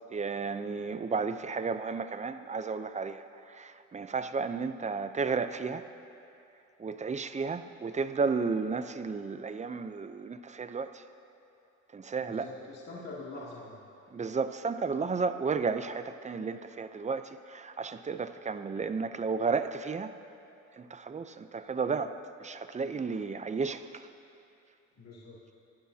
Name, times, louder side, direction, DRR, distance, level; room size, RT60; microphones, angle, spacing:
voice 1, 0.1-3.2 3.6-5.8 6.8-11.0 11.9-12.5 14.1-20.1 20.8-22.1 22.4-24.0, right 5 dB, 25° right, 10 dB, 0.6 m, -33 dB
voice 2, 12.2-13.8 24.9-25.4, left 2 dB, 60° left, -6 dB, 2.5 m, -44 dB
23.5 x 11.5 x 2.8 m, 2.9 s
cardioid pair, 90°, 30 cm